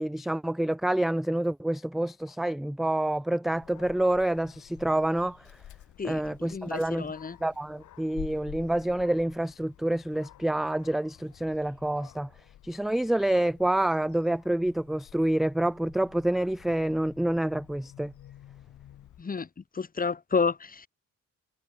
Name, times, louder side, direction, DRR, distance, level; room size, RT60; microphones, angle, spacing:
voice 1, 0.0-5.5 6.0-7.1 7.4-12.3 12.6-18.1, right 1 dB, ahead, 0.3 m, -27 dB
Dog, 3.5-19.2, left 12 dB, 75° left, 6.4 m, -50 dB
voice 2, 6.0-7.4 19.2-19.5 19.7-20.9, left 5 dB, 30° left, 1.6 m, -30 dB
cardioid pair, 90°, 30 cm